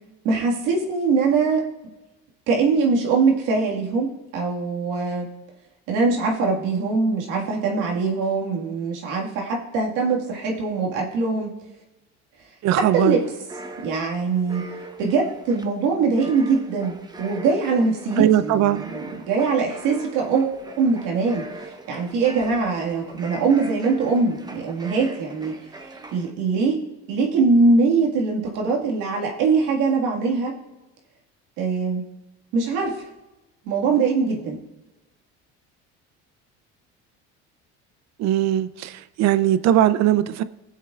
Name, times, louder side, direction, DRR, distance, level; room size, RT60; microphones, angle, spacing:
voice 1, 0.2-1.6 2.5-5.3 5.9-11.5 12.7-13.2 13.8-14.6 15.0-21.4 21.9-25.5 26.1-26.8 27.1-30.5 31.6-32.0 32.5-33.0 33.7-34.6, right 4 dB, 80° right, -1 dB, 1.9 m, -22 dB
voice 2, 12.6-13.2 18.2-18.9 38.2-38.9 39.2-40.4, right 12 dB, 60° right, 14 dB, 0.6 m, -19 dB
sound 1, 12.9-26.3, right 2 dB, 15° right, 0.9 m, -41 dB
19.0 x 7.4 x 2.4 m, 1.0 s
supercardioid pair, 100°, 31 cm